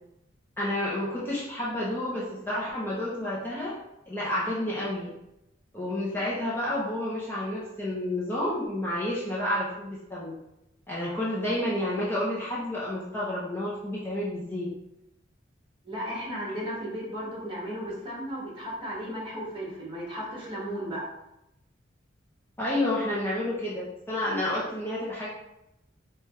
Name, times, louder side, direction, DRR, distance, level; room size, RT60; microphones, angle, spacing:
voice 1, 0.6-3.7 4.1-5.1 5.7-10.4 10.9-14.7 22.6-25.3, left 1 dB, 10° left, -7 dB, 0.6 m, -30 dB
voice 2, 15.8-21.0, equal, 25° right, -6 dB, 1.4 m, -35 dB
4.9 x 2.3 x 3.1 m, 0.86 s
head